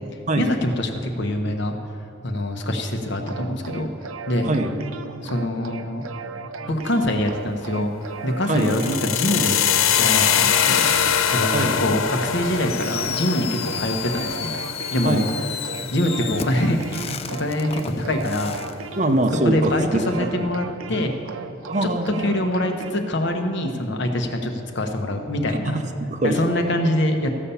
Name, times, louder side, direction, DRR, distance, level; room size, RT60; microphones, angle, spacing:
voice 1, 0.4-1.7 2.2-3.9 4.3-4.5 5.2-6.0 6.7-7.9 8.2-9.6 10.0-10.9 11.3-11.5 11.8-13.5 13.8-14.5 14.9-15.2 15.9-18.6 19.4-21.2 21.8-21.9 22.2-25.8 26.2-27.4, left 1 dB, 60° left, 4 dB, 1.0 m, -24 dB
sound 1, 3.2-22.9, right 4 dB, 85° right, 0.6 m, -36 dB
sound 2, 8.6-16.6, left 9 dB, 80° left, 0.6 m, -23 dB
voice 2, 11.5-11.8 15.0-15.3 19.0-20.3 20.9-21.0 21.6-22.3 25.5-26.4, right 1 dB, 35° right, 6 dB, 0.6 m, -23 dB
Fireworks, 12.7-18.7, left 8 dB, 30° left, 0.3 m, -33 dB
14.0 x 6.9 x 5.6 m, 2.5 s
head